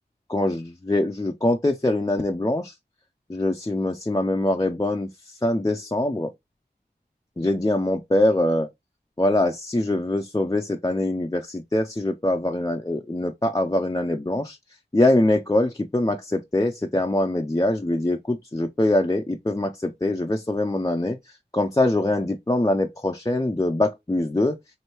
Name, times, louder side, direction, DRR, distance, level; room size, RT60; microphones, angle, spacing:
voice 1, 0.3-2.7 3.3-5.1 5.4-6.3 7.4-8.7 9.2-14.6 14.9-21.2 21.5-24.6, left 1 dB, 20° left, 0.5 m, -23 dB
4.4 x 2.6 x 3.0 m
wide cardioid pair, 40°, 17 cm